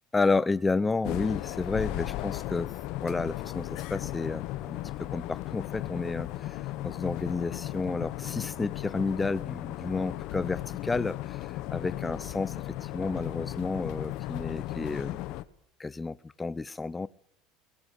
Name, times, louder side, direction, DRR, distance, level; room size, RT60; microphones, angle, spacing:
voice 1, 0.1-15.2 15.8-17.1, left 3 dB, 15° left, 0.9 m, -31 dB
sound 1, 1.0-15.4, left 16 dB, 65° left, 1.4 m, -36 dB
sound 2, 4.6-10.2, right 2 dB, 15° right, 2.5 m, -56 dB
22.0 x 21.5 x 8.2 m
supercardioid pair, 110°, 0 cm